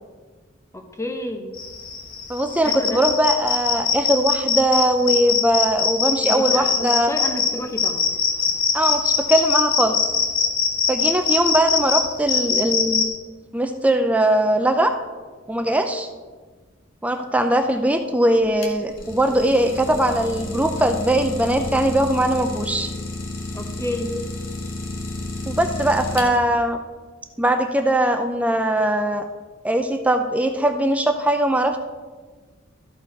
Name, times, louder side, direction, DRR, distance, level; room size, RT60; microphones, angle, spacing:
voice 1, 0.7-1.6 2.6-3.0 6.2-8.0 23.5-24.2, left 1 dB, 15° left, 4 dB, 0.8 m, -30 dB
sound 1, 1.6-13.1, left 6 dB, 50° left, 1.3 m, -22 dB
voice 2, 2.3-7.1 8.7-10.0 10.9-13.0 13.5-14.9 15.5-16.1 17.0-22.9 25.4-26.8 27.4-29.3 29.6-31.8, right 1 dB, 5° right, 6 dB, 0.4 m, -20 dB
Idling, 18.4-26.7, left 2 dB, 85° left, 1.3 m, -31 dB
13.5 x 4.5 x 4.6 m, 1.4 s
head